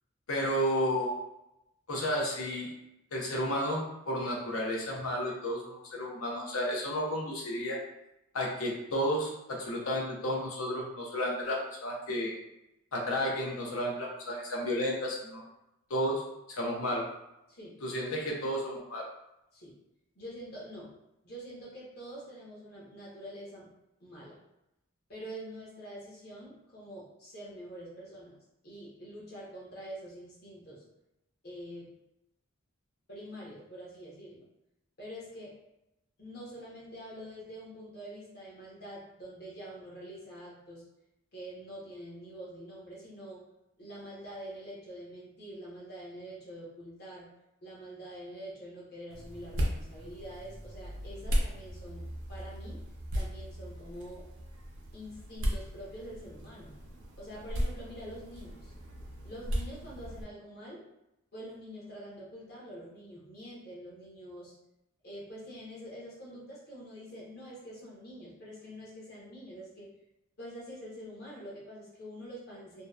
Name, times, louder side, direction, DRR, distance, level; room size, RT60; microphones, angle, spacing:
voice 1, 0.3-1.2 1.9-2.7 3.1-7.8 8.3-12.3 12.9-15.4 15.9-16.2 16.5-17.0 17.8-19.1, equal, 75° left, -2 dB, 0.6 m, -32 dB
voice 2, 17.5-17.8 19.5-19.8 20.1-20.9 21.2-23.7 24.0-24.4 25.1-28.4 28.6-30.8 31.4-31.9 33.1-34.4 35.0-35.5 36.2-40.8 41.3-43.4 43.8-47.3 47.6-52.8 53.1-54.3 54.9-56.8 57.2-58.7 59.2-60.8 61.3-64.5 65.0-69.9 70.4-72.9, equal, 45° left, -6 dB, 0.8 m, -46 dB
sound 1, 49.1-60.2, equal, 60° right, 0.5 m, -36 dB
2.7 x 2.1 x 2.3 m, 0.90 s
head